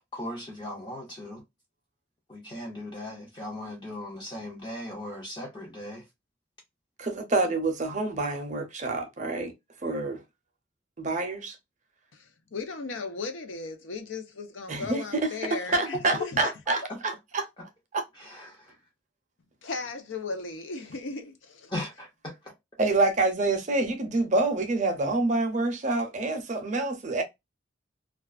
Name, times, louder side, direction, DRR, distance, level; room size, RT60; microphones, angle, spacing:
voice 1, 0.1-1.4 2.3-6.0 16.4-16.5 18.2-18.7 21.7-22.4, left 1 dB, 25° left, 0.5 m, -38 dB
voice 2, 7.0-9.5 9.8-10.2 11.0-11.6 14.7-17.5 17.9-18.0 22.8-27.2, right 2 dB, 40° right, 0.5 m, -27 dB
voice 3, 12.1-16.5 19.6-21.7, left 4 dB, 80° left, 0.6 m, -36 dB
2.3 x 2.3 x 2.3 m
head